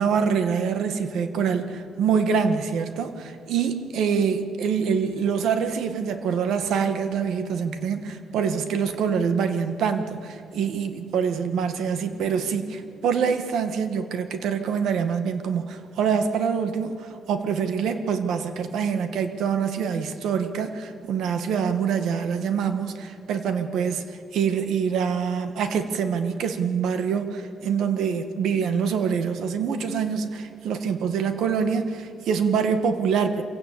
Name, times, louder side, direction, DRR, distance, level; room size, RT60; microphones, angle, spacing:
voice 1, 0.0-33.4, right 6 dB, 80° right, 8 dB, 1.9 m, -25 dB
26.0 x 16.5 x 8.8 m, 2.5 s
cardioid pair, 150°, 0 cm